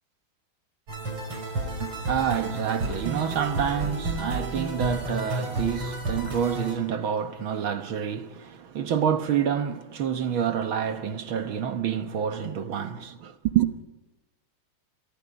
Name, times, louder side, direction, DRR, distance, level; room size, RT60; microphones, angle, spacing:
sound 1, 0.9-6.7, right 2 dB, 90° right, 6.5 m, -31 dB
voice 1, 1.8-13.7, right 8 dB, 70° right, 2.0 m, -28 dB
29.5 x 23.0 x 5.3 m
omnidirectional pair, 2.4 m